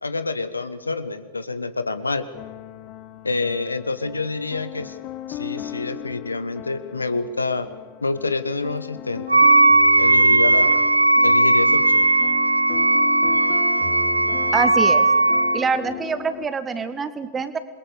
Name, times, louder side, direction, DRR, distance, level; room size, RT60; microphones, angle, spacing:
voice 1, 0.0-2.3 3.2-5.0 5.3-7.7 8.0-9.3 10.0-10.9 11.2-12.1, left 3 dB, 80° left, 13 dB, 1.1 m, -27 dB
sound 1, 2.3-16.5, left 12 dB, 40° left, 1.2 m, -36 dB
Wind instrument woodwind instrument, 9.3-15.6, right 2 dB, 85° right, 0.6 m, -17 dB
voice 2, 14.5-15.0 15.5-17.6, right 5 dB, 20° right, 12 dB, 1.8 m, -25 dB
28.0 x 22.0 x 6.8 m, 1.3 s
figure-of-eight pair, 90°, 0 cm